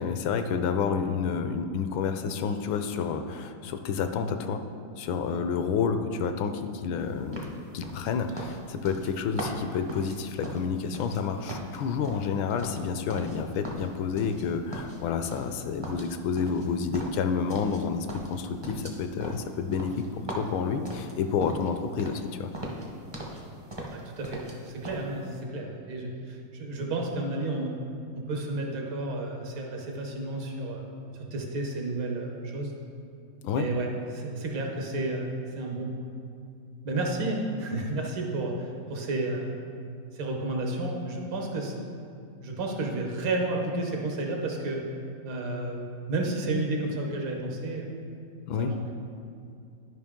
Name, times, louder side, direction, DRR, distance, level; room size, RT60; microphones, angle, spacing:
voice 1, 0.0-4.6 5.0-7.4 7.7-22.5 33.4-33.7 48.5-48.7, left 6 dB, 80° left, 8 dB, 1.3 m, -29 dB
sound 1, 7.3-11.2 11.5-13.4 13.6-14.4 14.7-15.6 15.8-17.8 18.1-21.7 22.0-22.3 22.5-23.4 23.7-24.6 24.8-25.0, right 1 dB, 35° right, 0.4 m, -39 dB
voice 2, 23.9-27.8 28.1-30.8 31.1-32.7 33.6-35.9 36.8-39.5 40.1-41.8 42.4-44.8 45.2-45.8 46.1-47.9 48.6-48.8, right 2 dB, 80° right, 1 dB, 1.9 m, -31 dB
11.5 x 5.3 x 3.6 m, 2.4 s
omnidirectional pair, 2.2 m